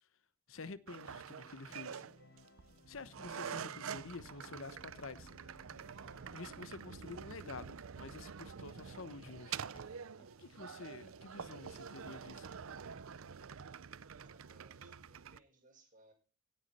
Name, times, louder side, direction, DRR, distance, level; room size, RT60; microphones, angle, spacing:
voice 1, 0.5-2.0 2.9-5.3 6.3-9.6 10.4-12.5, left 3 dB, 70° left, 1.0 m, -49 dB
sound 1, 0.9-15.4, right 7 dB, 80° right, 0.6 m, -47 dB
Organ, 1.4-7.2, left 2 dB, 50° left, 1.3 m, -61 dB
Run, 7.5-11.2 11.5-11.7 12.0-12.4 12.7-12.8, right 1 dB, 25° left, 4.5 m, -64 dB
voice 2, 14.2-16.1, right 2 dB, 40° right, 5.3 m, -66 dB
17.5 x 9.8 x 4.3 m
head